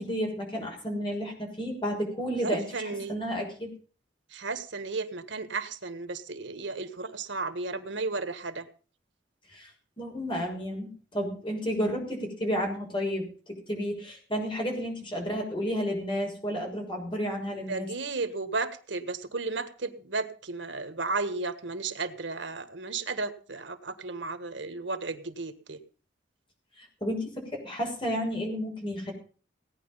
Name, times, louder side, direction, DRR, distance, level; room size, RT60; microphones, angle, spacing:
voice 1, 0.0-3.7 9.5-9.7 10.0-17.9 26.8-29.1, equal, 30° left, 1 dB, 6.3 m, -32 dB
voice 2, 2.4-3.1 4.3-8.7 17.7-25.8, right 3 dB, 85° right, 11 dB, 1.5 m, -34 dB
18.0 x 9.9 x 5.6 m, 0.39 s
head